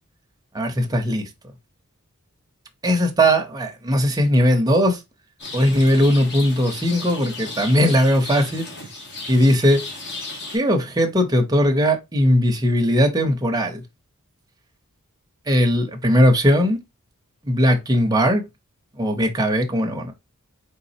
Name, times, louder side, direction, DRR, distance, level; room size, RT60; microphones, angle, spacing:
voice 1, 0.5-1.3 2.8-5.0 5.5-8.7 9.3-9.8 10.5-13.8 15.5-16.8 17.4-18.4 19.0-20.1, equal, 15° right, 0.7 m, -19 dB
Rain, 5.4-10.6, left 2 dB, 55° left, 1.4 m, -35 dB
4.0 x 3.7 x 2.7 m
head